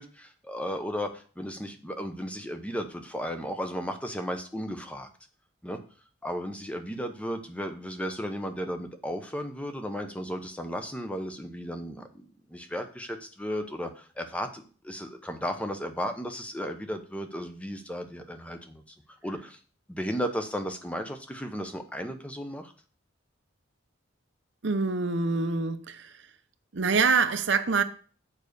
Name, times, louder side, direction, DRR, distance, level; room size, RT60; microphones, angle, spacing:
voice 1, 0.0-5.1 5.6-5.8 6.2-18.8 19.2-19.6 19.9-22.7, equal, 5° left, 0.8 m, -35 dB
voice 2, 24.6-26.2 26.7-27.8, right 4 dB, 60° right, 0.7 m, -25 dB
7.3 x 5.3 x 6.6 m
head